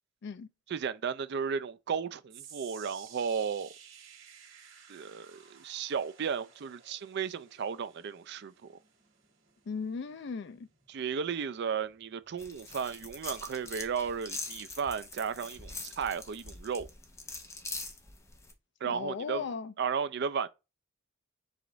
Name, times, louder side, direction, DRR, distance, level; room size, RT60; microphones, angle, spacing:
voice 1, 0.7-3.7 4.9-8.7 10.9-16.9 18.8-19.4 19.8-20.5, right 6 dB, 55° right, 0.4 m, -34 dB
sound 1, 2.3-14.6 14.9-15.3 15.9-16.0, right 8 dB, 70° right, 1.7 m, -56 dB
voice 2, 9.7-10.7 18.8-19.7, left 5 dB, 60° left, 0.4 m, -37 dB
sound 2, 12.4-18.5, left 3 dB, 15° left, 0.7 m, -43 dB
4.9 x 2.5 x 3.8 m
head